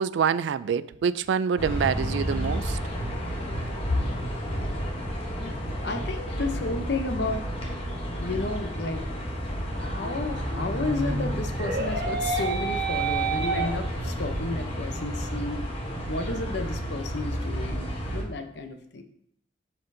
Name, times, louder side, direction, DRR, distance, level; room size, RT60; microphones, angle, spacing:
voice 1, 0.0-2.8, right 7 dB, 75° right, 0.3 m, -26 dB
sound 1, 1.6-18.2, equal, 30° left, 1.1 m, -31 dB
voice 2, 3.9-4.8 5.8-7.5 8.2-9.0 9.7-15.7 16.0-19.0, left 2 dB, 65° left, 0.7 m, -32 dB
sound 2, 9.7-14.3 14.7-14.8 15.3-15.4 15.8-17.0, right 4 dB, 60° right, 1.5 m, -31 dB
12.5 x 4.3 x 2.7 m
head